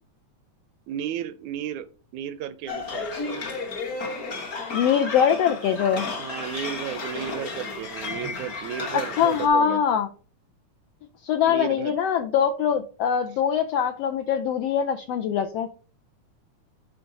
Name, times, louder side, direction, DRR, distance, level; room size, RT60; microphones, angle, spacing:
voice 1, 0.9-1.9 2.1-3.1 6.2-9.8 11.5-11.9, right 10 dB, 80° right, 14 dB, 1.8 m, -33 dB
sound 1, 2.7-9.5, left 3 dB, 50° left, 1.0 m, -33 dB
voice 2, 4.7-6.1 9.2-10.1 11.2-15.7, left 8 dB, 80° left, 6 dB, 1.4 m, -23 dB
10.5 x 3.8 x 5.2 m, 0.37 s
omnidirectional pair, 3.6 m